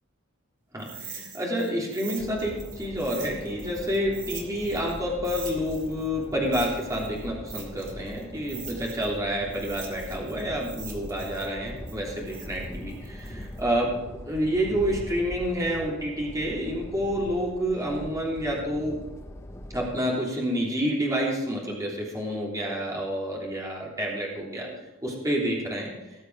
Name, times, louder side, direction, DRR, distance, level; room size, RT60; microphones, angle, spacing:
voice 1, 0.7-19.0 19.7-24.7 25.0-25.9, equal, 15° right, -4 dB, 3.2 m, -29 dB
sound 1, 0.8-5.0 5.2-9.2 9.5-13.6, right 6 dB, 40° right, 2.6 m, -43 dB
sound 2, 2.2-19.9, equal, 15° left, 1.0 m, -41 dB
19.0 x 6.7 x 4.7 m, 0.96 s
head